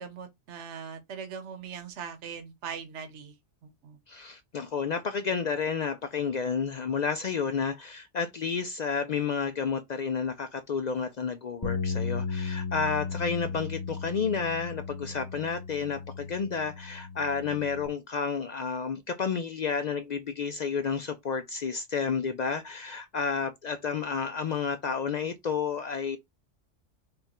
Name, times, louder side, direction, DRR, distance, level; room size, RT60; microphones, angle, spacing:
voice 1, 0.0-3.4 3.6-4.0, right 6 dB, 70° right, 1.2 m, -40 dB
voice 2, 4.1-26.2, left 5 dB, 70° left, 0.4 m, -31 dB
sound 1, 11.6-17.9, left 5 dB, 20° left, 0.9 m, -35 dB
5.1 x 2.3 x 4.2 m
omnidirectional pair, 1.3 m